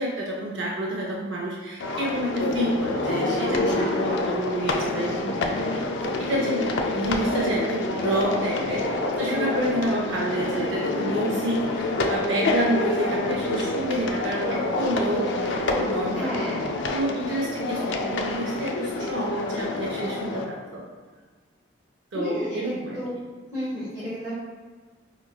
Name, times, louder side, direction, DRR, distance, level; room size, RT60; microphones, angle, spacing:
voice 1, 0.0-16.4 16.9-20.8 22.1-23.0, right 1 dB, 75° right, -3 dB, 0.5 m, -29 dB
sound 1, 1.8-20.4, left 2 dB, 70° left, 0.4 m, -27 dB
voice 2, 3.4-4.0 16.1-16.7 22.1-23.1 23.5-24.3, equal, 20° right, -15 dB, 1.4 m, -31 dB
4.5 x 2.9 x 2.3 m, 1.5 s
head